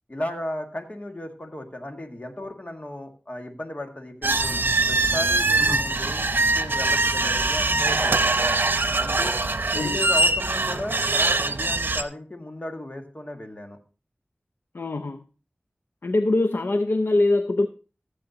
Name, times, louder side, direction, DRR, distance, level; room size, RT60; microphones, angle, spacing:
voice 1, 0.1-4.6 4.9-6.3 6.5-8.6 9.0-9.4 9.7-13.8, left 1 dB, 40° left, 3 dB, 1.9 m, -35 dB
sound 1, 4.2-12.0, right 2 dB, 65° right, 0.7 m, -22 dB
voice 2, 9.7-10.1 14.7-15.2 16.0-17.7, left 2 dB, 70° left, 8 dB, 0.6 m, -23 dB
15.5 x 7.6 x 2.8 m, 0.34 s
wide cardioid pair, 55°, 4 cm